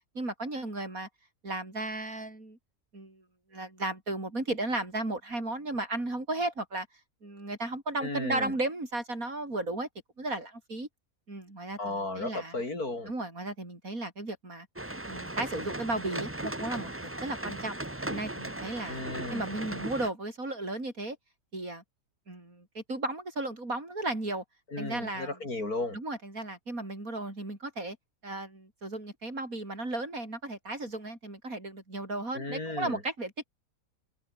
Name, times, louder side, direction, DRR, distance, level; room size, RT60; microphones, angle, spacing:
voice 1, 0.2-1.1 1.4-2.6 2.9-3.2 3.5-6.9 7.2-9.9 10.2-10.9 11.3-12.6 13.1-14.7 15.1-16.9 17.2-17.8 18.1-21.2 21.5-21.8 22.3-24.4 24.8-25.4 25.9-28.0 28.2-33.4, right 2 dB, 70° right, 6.8 m, -35 dB
voice 2, 8.0-8.5 11.8-13.1 18.9-19.5 24.7-26.0 32.3-33.0, left 2 dB, 80° left, 6.1 m, -35 dB
sound 1, 14.8-20.1, right 1 dB, 10° right, 1.2 m, -37 dB
open air
omnidirectional pair, 1.6 m